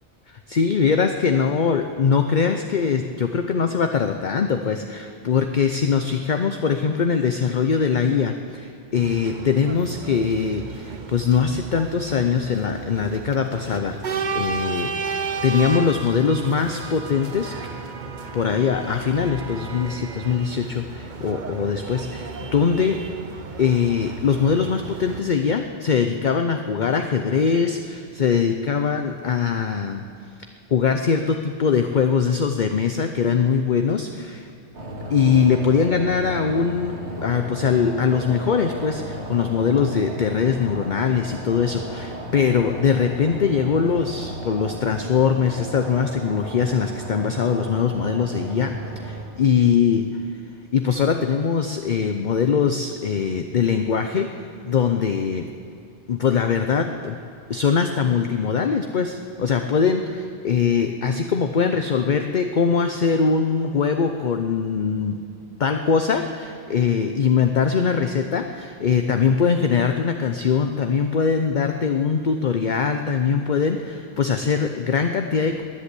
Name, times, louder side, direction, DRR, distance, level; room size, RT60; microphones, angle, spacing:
voice 1, 0.5-17.5 18.3-23.0 23.6-30.0 30.7-34.5 35.1-50.1 50.7-55.5 56.1-57.2 57.5-65.2 65.6-75.6, left 6 dB, 45° left, 6 dB, 0.8 m, -22 dB
sound 1, 8.9-25.2, right 5 dB, 45° right, 0.9 m, -33 dB
sound 2, 34.7-49.2, right 1 dB, 70° right, 2.2 m, -34 dB
21.5 x 8.1 x 8.4 m, 2.5 s
omnidirectional pair, 1.2 m